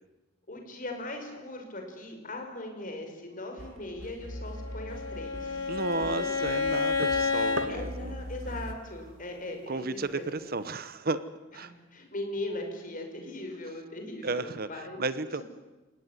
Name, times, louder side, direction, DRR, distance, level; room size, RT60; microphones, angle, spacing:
voice 1, 0.5-5.7 5.9-6.3 7.7-10.4 11.9-15.0, left 2 dB, 45° left, 4 dB, 5.8 m, -39 dB
sound 1, 3.6-8.7, equal, 85° right, 2.1 m, -42 dB
Bowed string instrument, 4.5-7.7, left 4 dB, 70° left, 2.9 m, -30 dB
voice 2, 5.7-8.1 9.7-11.2 11.5-11.7 14.2-15.4, right 3 dB, 50° right, 14 dB, 1.1 m, -33 dB
sound 2, 5.9-11.0, right 1 dB, 65° right, 2.1 m, -45 dB
28.5 x 17.5 x 9.8 m, 1.2 s
head